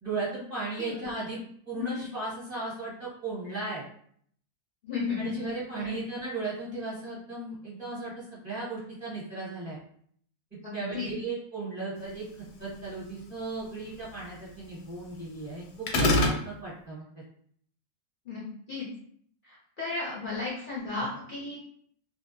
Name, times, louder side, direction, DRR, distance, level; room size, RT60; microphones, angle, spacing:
voice 1, 0.0-1.4 1.7-3.8 5.2-9.8 10.7-12.2 12.6-17.0, right 3 dB, 30° right, -8 dB, 1.0 m, -36 dB
voice 2, 0.8-1.1 1.8-2.1 4.8-5.3 5.8-6.0 10.6-11.1 18.3-18.9 19.5-21.6, left 4 dB, 60° left, -5 dB, 0.5 m, -34 dB
sound 1, 15.9-16.4, left 1 dB, 85° left, 1.1 m, -22 dB
2.7 x 2.3 x 2.6 m, 0.63 s
omnidirectional pair, 1.7 m